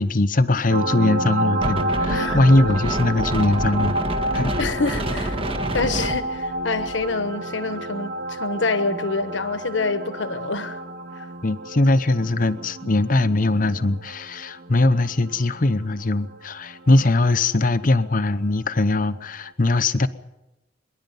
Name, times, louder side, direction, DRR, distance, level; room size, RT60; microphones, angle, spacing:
voice 1, 0.0-4.0 4.3-4.5 11.4-20.1, left 2 dB, 45° left, 12 dB, 0.9 m, -20 dB
sound 1, 0.7-17.9 19.5-19.6, right 1 dB, 50° right, 1.0 m, -30 dB
Wind, 1.6-7.1, right 1 dB, 30° right, 1.6 m, -29 dB
voice 2, 2.1-2.4 4.6-5.4 5.7-10.8 11.2-11.3, left 3 dB, 80° left, 10 dB, 1.2 m, -26 dB
25.5 x 11.0 x 9.3 m, 0.98 s
head